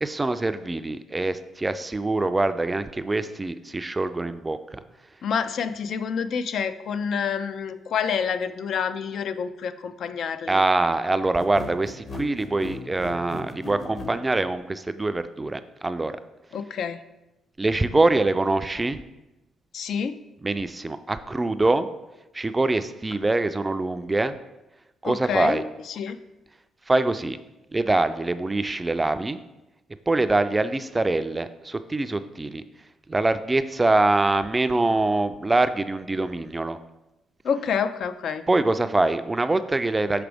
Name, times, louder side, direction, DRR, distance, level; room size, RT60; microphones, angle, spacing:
voice 1, 0.0-4.8 10.5-16.2 17.6-19.0 20.4-21.9 22.3-24.3 25.0-25.6 26.9-27.4 27.7-29.4 30.1-32.6 33.1-36.8 38.5-40.2, right 2 dB, 20° right, 11 dB, 0.3 m, -24 dB
voice 2, 5.2-10.6 16.5-17.0 19.7-20.2 25.0-26.2 37.4-38.4, left 7 dB, 65° left, 11 dB, 0.3 m, -28 dB
sound 1, 11.4-14.2, left 2 dB, 40° left, 0.8 m, -37 dB
5.9 x 4.9 x 3.4 m, 0.97 s
cardioid pair, 90°, 0 cm